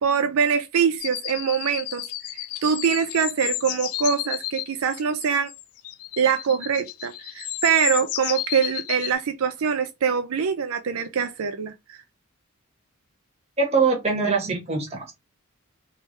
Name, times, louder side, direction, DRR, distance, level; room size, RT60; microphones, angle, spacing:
voice 1, 0.0-2.0 2.3-5.5 6.2-12.0, right 7 dB, 75° right, 0.4 m, -24 dB
sound 1, 1.0-9.1, left 14 dB, 85° left, 0.4 m, -32 dB
voice 2, 13.6-15.1, right 4 dB, 30° right, 1.3 m, -23 dB
3.2 x 3.2 x 3.1 m
head